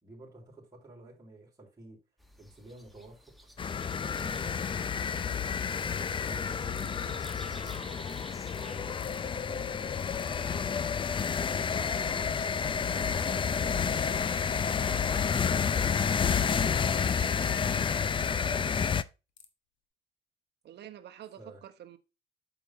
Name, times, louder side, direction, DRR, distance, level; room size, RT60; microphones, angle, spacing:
voice 1, 0.0-2.0 2.4-3.3 4.0-5.3 5.5-8.3 8.5-10.9 11.2-12.4 12.9-15.3 15.7-18.8 21.4-21.6, right 2 dB, 15° right, 3.7 m, -51 dB
sound 1, 2.2-8.9, equal, ahead, 1.1 m, -53 dB
sound 2, 3.6-19.0, left 6 dB, 25° left, 0.4 m, -30 dB
sound 3, 4.1-4.6 5.3-5.4 5.8-6.4 6.8-6.9 7.2-7.4 7.6-7.8 8.1-8.2 8.5-8.6 9.0-9.3 10.0-10.4 11.2-11.6 12.6-13.0 15.1-15.2 15.7-15.9 16.3-16.6 17.0-17.2 17.6-18.4 18.8-18.9 19.4-19.5, left 9 dB, 75° left, 1.4 m, -52 dB
voice 2, 20.6-22.0, right 11 dB, 60° right, 1.1 m, -47 dB
8.2 x 6.0 x 2.8 m
cardioid pair, 115°, 20 cm